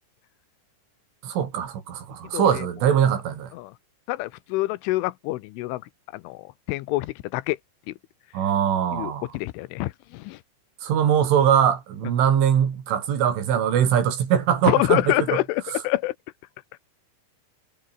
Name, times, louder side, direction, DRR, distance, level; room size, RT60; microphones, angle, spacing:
voice 1, 1.2-3.5 8.3-9.4 10.8-15.0 15.3-15.4 15.7-15.8, right 9 dB, 80° right, 6.1 m, -22 dB
voice 2, 2.3-2.7 3.5-3.7 4.1-5.8 6.1-7.6 7.9-8.0 8.9-10.4 14.7-16.1, left 18 dB, 85° left, 3.3 m, -26 dB
omnidirectional pair, 5.6 m